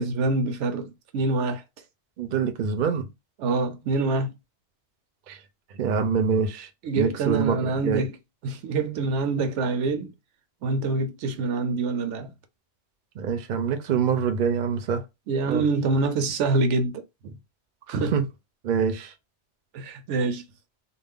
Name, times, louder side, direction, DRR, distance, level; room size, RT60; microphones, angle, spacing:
voice 1, 0.0-1.6 3.4-4.3 6.8-8.1 8.4-10.1 10.6-12.3 15.3-17.4 17.9-18.1 19.7-20.4, right 3 dB, 85° right, 0.9 m, -26 dB
voice 2, 2.2-3.1 5.3-5.4 5.8-6.7 7.0-8.1 13.2-15.0 15.5-15.7 18.1-18.2 18.6-19.1, right 6 dB, 55° right, 0.6 m, -25 dB
2.4 x 2.0 x 3.4 m
omnidirectional pair, 1.2 m